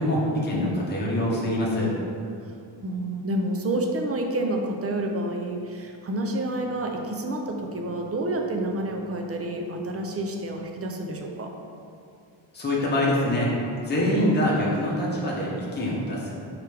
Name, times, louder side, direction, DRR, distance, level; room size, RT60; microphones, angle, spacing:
voice 1, 0.0-1.9 12.5-13.5 13.9-16.3, left 1 dB, 20° left, -6 dB, 0.8 m, -24 dB
voice 2, 2.8-11.5, right 1 dB, 35° right, 1 dB, 0.4 m, -29 dB
4.8 x 3.3 x 3.3 m, 2.4 s
wide cardioid pair, 155°, 48 cm